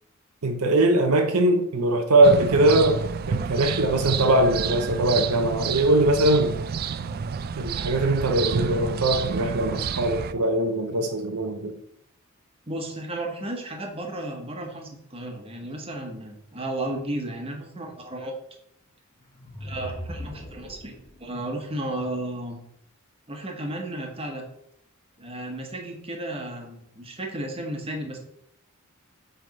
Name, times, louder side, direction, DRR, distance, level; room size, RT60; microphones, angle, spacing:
voice 1, 0.4-6.6 7.6-11.7, right 1 dB, 90° right, 0.7 m, -21 dB
sound 1, 2.2-10.3, right 6 dB, 45° right, 0.3 m, -29 dB
voice 2, 12.7-18.3 19.6-22.6 23.3-24.5 25.2-28.2, right 1 dB, 25° right, 1.2 m, -33 dB
sound 2, 19.2-21.3, equal, 25° left, 1.1 m, -39 dB
7.5 x 3.5 x 5.2 m
head